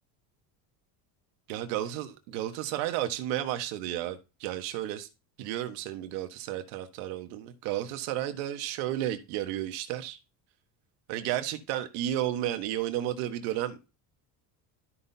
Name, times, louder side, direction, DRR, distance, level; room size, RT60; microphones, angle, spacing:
voice 1, 1.5-5.1 5.4-10.2 11.1-13.9, right 12 dB, 85° right, 1.4 m, -32 dB
13.0 x 5.7 x 2.8 m
supercardioid pair, 95°, 47 cm